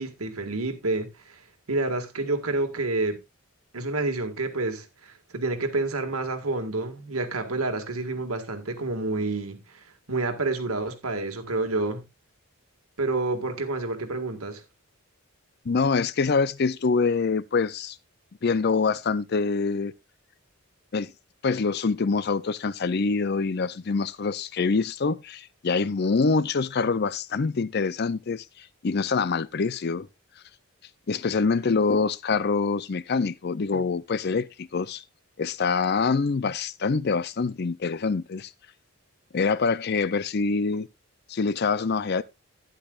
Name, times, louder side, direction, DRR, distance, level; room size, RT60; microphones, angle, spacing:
voice 1, 0.0-1.4 1.7-3.2 3.7-12.0 13.0-14.6, right 2 dB, 90° right, 1.9 m, -29 dB
voice 2, 15.7-18.0 18.4-19.9 20.9-21.1 21.4-28.4 28.8-30.1 31.1-35.0 35.4-38.5 39.3-40.9 41.3-42.2, left 4 dB, 50° left, 0.5 m, -25 dB
12.0 x 10.0 x 2.4 m
head